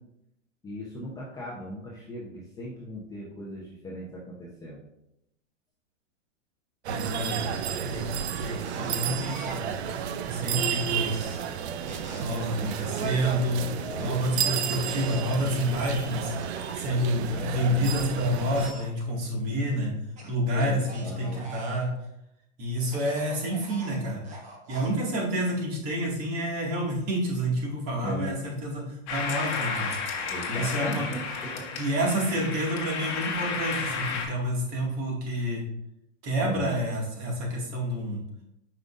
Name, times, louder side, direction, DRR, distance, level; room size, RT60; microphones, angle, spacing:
voice 1, 0.6-4.8 12.5-12.7 13.0-13.2 13.5-14.1 17.1-17.9 20.5-21.4 28.0-28.3 30.3-31.8 36.4-36.8, equal, 10° left, -4 dB, 0.7 m, -38 dB
sound 1, 6.8-18.7, right 8 dB, 60° right, 0.6 m, -32 dB
voice 2, 6.9-9.8 10.3-11.4 12.2-13.6 14.0-16.3 16.7-19.9 20.3-21.9 22.6-24.2 24.7-30.0 30.5-31.0 31.8-35.6 36.2-38.2, equal, 35° right, -2 dB, 2.1 m, -29 dB
sound 2, 8.7-9.9 10.6-15.4 16.2-17.6 18.5-18.9 20.2-21.9 22.8-25.0, right 2 dB, 20° right, 1.1 m, -45 dB
sound 3, 29.1-34.3, left 5 dB, 35° left, 1.2 m, -32 dB
7.6 x 5.4 x 2.5 m, 0.82 s
hypercardioid pair, 145°, 38 cm